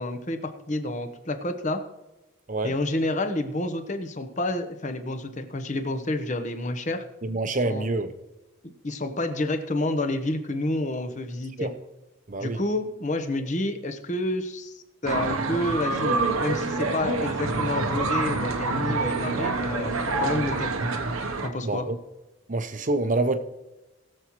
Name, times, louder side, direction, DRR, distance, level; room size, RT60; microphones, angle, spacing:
voice 1, 0.0-1.8 2.6-7.0 7.4-7.9 8.8-11.7 12.4-20.7 21.4-21.9, left 2 dB, 35° left, 0.9 m, -29 dB
voice 2, 7.2-8.1 11.6-11.7 12.3-12.6 21.6-22.0 22.5-23.4, right 2 dB, 35° right, 0.7 m, -26 dB
sound 1, 15.0-21.5, right 3 dB, 80° right, 1.0 m, -27 dB
20.5 x 7.2 x 3.1 m
head